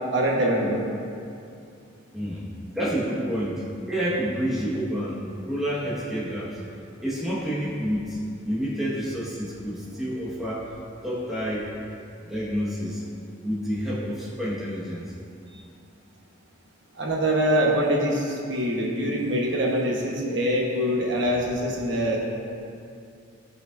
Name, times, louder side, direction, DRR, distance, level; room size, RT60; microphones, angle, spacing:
voice 1, 0.1-0.8 17.0-22.2, equal, 60° right, -2 dB, 1.1 m, -24 dB
voice 2, 2.1-6.6 7.0-10.7 11.0-11.7 12.2-13.0 13.4-15.1 21.9-22.0, equal, ahead, -8 dB, 1.4 m, -29 dB
16.5 x 5.6 x 2.6 m, 2.5 s
head